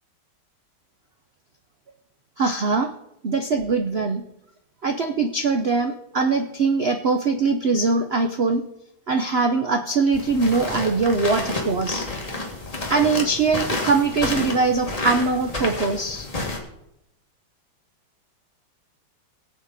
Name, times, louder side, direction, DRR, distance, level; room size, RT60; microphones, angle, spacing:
voice 1, 2.4-2.9 3.2-4.2 4.8-8.7 9.1-12.1 12.9-16.3, right 4 dB, 80° right, 6 dB, 0.5 m, -22 dB
sound 1, 10.1-16.6, left 2 dB, 20° left, 1.9 m, -29 dB
22.5 x 7.9 x 4.1 m, 0.82 s
omnidirectional pair, 2.2 m